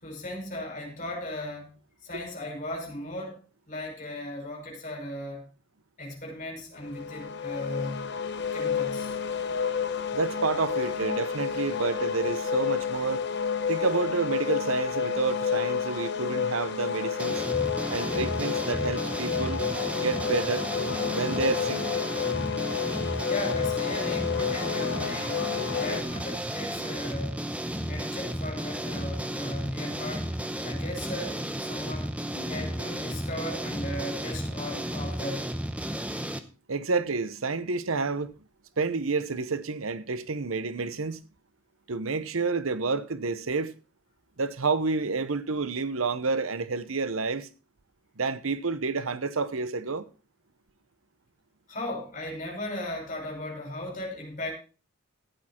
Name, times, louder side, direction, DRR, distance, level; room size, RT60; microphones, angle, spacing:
voice 1, 0.0-1.7 2.0-3.4 3.7-5.5 6.0-8.1 8.5-9.2 23.3-27.5 27.9-31.4 31.7-32.2 32.5-35.5 51.7-54.5, left 1 dB, 40° left, 5.3 m, -37 dB
sound 1, 6.8-26.0, left 6 dB, 55° left, 1.0 m, -30 dB
voice 2, 10.1-13.2 13.7-17.4 17.9-19.6 20.0-20.7 21.1-21.8 36.7-38.3 38.8-41.2 41.9-43.7 44.4-47.5 48.2-50.1, right 4 dB, 85° right, 0.9 m, -29 dB
sound 2, 17.2-36.4, right 1 dB, 5° right, 0.8 m, -33 dB
sound 3, 22.2-35.2, left 3 dB, 90° left, 3.4 m, -52 dB
14.0 x 8.7 x 4.4 m
head